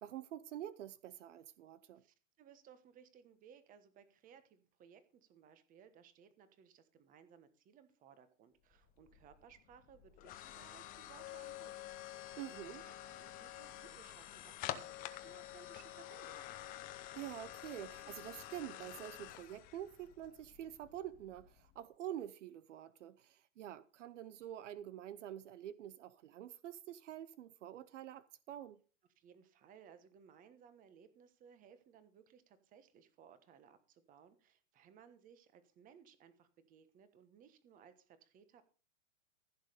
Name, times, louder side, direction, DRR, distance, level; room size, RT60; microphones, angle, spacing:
voice 1, 0.0-2.0 12.4-12.8 17.2-28.8, right 11 dB, 65° right, 0.8 m, -47 dB
voice 2, 2.0-16.4 29.2-38.6, right 7 dB, 20° right, 1.2 m, -62 dB
sound 1, 8.7-21.8, left 13 dB, 20° left, 0.8 m, -49 dB
15.0 x 6.6 x 5.1 m
hypercardioid pair, 145°, 40 cm